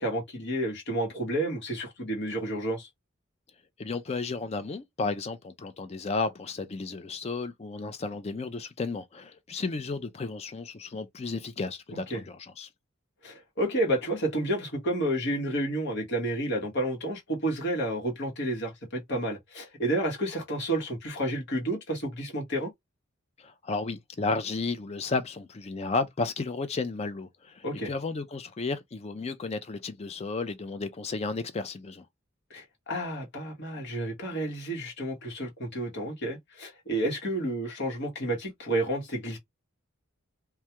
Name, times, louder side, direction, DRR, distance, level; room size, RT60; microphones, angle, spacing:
voice 1, 0.0-2.9 11.9-12.2 13.2-22.7 27.6-27.9 32.5-39.4, right 1 dB, 55° left, 1.0 m, -30 dB
voice 2, 3.8-12.7 23.4-32.1, left 3 dB, 30° left, 0.4 m, -33 dB
2.3 x 2.2 x 2.8 m
head